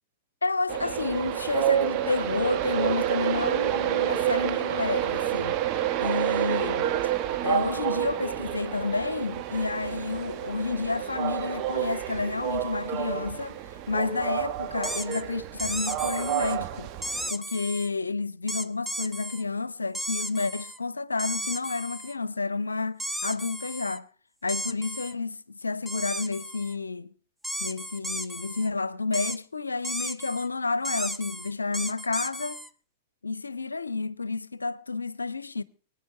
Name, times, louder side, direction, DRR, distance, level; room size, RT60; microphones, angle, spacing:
voice 1, 0.4-5.6 6.0-6.9 7.4-13.6 13.9-16.9 17.3-24.1 24.4-27.1 27.6-32.6 33.2-35.6, left 3 dB, 80° left, 0.6 m, -30 dB
Train, 0.7-17.3, right 12 dB, 40° right, 1.1 m, -29 dB
sound 1, 14.8-15.2 15.6-16.6 17.0-17.9 18.5-19.4 19.9-20.8 21.2-22.1 23.0-24.0 24.5-25.1 25.9-26.7 27.4-28.7 29.1-29.4 29.8-30.5 30.8-32.7, equal, ahead, 0.7 m, -34 dB
23.5 x 9.4 x 4.7 m
figure-of-eight pair, 100°, 0 cm